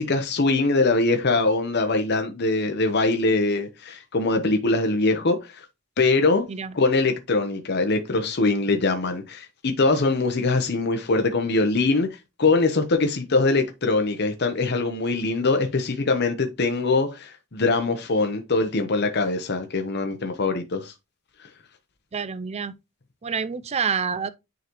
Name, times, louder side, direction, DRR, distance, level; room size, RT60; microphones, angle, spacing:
voice 1, 0.0-5.6 6.0-6.5 6.7-20.9 21.4-21.5, left 3 dB, 50° left, 0.8 m, -23 dB
voice 2, 22.1-22.8 23.2-24.3, right 6 dB, 30° right, 0.4 m, -27 dB
9.3 x 3.9 x 3.0 m
head